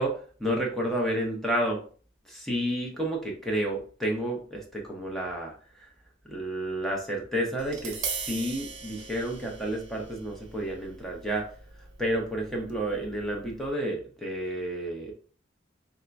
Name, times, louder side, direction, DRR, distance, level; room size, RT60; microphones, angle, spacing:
voice 1, 0.0-1.8 2.3-5.9 6.3-8.0 8.2-11.4 12.0-15.1, right 1 dB, ahead, -1 dB, 0.9 m, -30 dB
Tap, 7.6-13.7, right 5 dB, 70° right, 0.8 m, -40 dB
3.6 x 2.7 x 3.4 m, 0.42 s
head